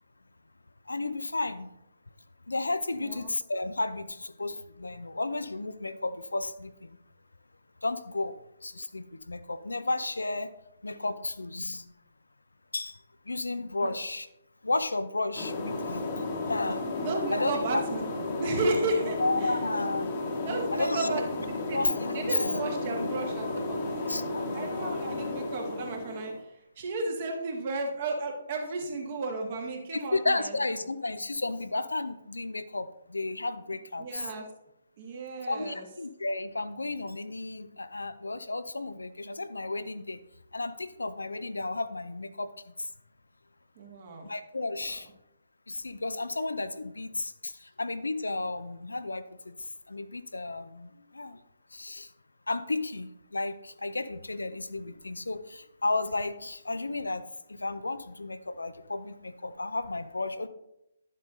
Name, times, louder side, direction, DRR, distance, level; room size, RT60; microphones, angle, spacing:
voice 1, 0.9-1.7 2.5-7.0 7.8-10.5 10.8-11.9 12.7-13.0 13.3-14.3 14.6-16.0 16.5-16.9 17.3-17.8 19.2-20.1 20.7-21.2 21.7-23.1 24.1-24.5 24.8-25.4 30.1-34.3 35.5-40.2 40.5-42.5 44.3-45.1 45.7-49.5 49.9-51.4 51.7-52.1 52.5-57.2 57.5-60.5, left 2 dB, 70° left, 12 dB, 0.5 m, -33 dB
voice 2, 2.9-3.3 13.8-14.0 16.4-16.5 17.0-19.5 20.4-21.8 22.1-24.2 24.5-30.6 34.0-34.5 35.0-35.9 43.8-44.3 44.8-45.0, right 2 dB, 40° right, 2 dB, 1.5 m, -33 dB
sound 1, 15.3-26.4, left 2 dB, 30° left, 1.1 m, -33 dB
10.5 x 7.3 x 2.6 m, 0.86 s
figure-of-eight pair, 135°, 0 cm